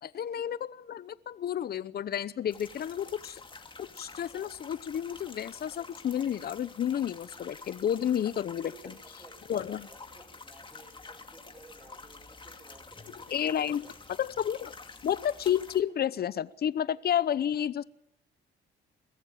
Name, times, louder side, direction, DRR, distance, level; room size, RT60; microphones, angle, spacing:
voice 1, 0.0-3.4 3.8-8.9 9.5-9.9 13.3-13.8 14.2-14.7 15.0-17.8, left 9 dB, 55° left, 18 dB, 0.8 m, -31 dB
sound 1, 2.5-15.8, left 3 dB, 25° left, 2.3 m, -48 dB
voice 2, 8.4-9.4 9.7-13.9, right 2 dB, 25° right, 0 dB, 6.9 m, -56 dB
22.5 x 14.0 x 9.0 m, 0.76 s
cardioid pair, 90°, 20 cm